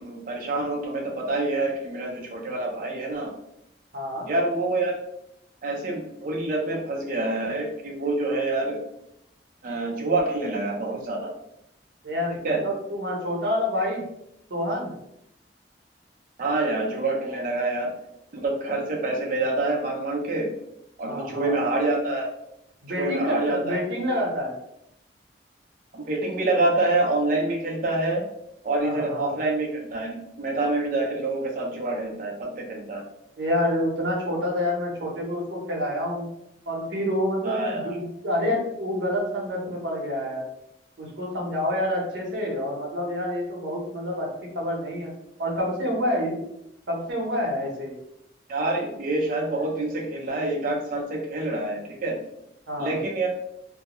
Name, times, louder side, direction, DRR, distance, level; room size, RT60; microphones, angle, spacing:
voice 1, 0.0-3.3 4.3-4.9 5.6-8.8 9.6-11.3 12.4-12.6 16.4-17.9 18.3-20.5 21.0-22.3 22.9-23.8 25.9-28.2 28.6-33.0 37.4-38.0 48.5-52.2 52.8-53.3, right 2 dB, 50° right, 0 dB, 0.5 m, -26 dB
voice 2, 3.9-4.3 12.0-14.0 14.5-14.9 21.0-21.6 22.8-24.5 28.8-29.3 33.4-36.3 36.7-40.4 41.0-44.3 44.5-45.1 45.4-46.4 46.9-47.9 52.7-52.9, left 1 dB, 75° right, -1 dB, 0.8 m, -28 dB
2.2 x 2.0 x 2.9 m, 0.80 s
head